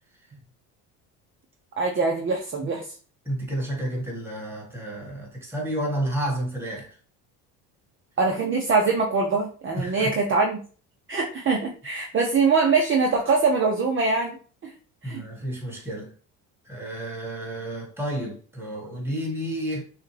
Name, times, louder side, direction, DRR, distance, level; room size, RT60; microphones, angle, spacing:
voice 1, 1.8-2.8 8.2-10.6 11.1-14.4 14.6-14.7 15.0-15.2, right 4 dB, 35° right, 0.8 m, -23 dB
voice 2, 3.2-7.0 9.7-10.2 15.0-16.1 16.7-19.8, right 1 dB, 5° right, 1.9 m, -31 dB
6.2 x 2.4 x 3.3 m
cardioid pair, 105°, 37 cm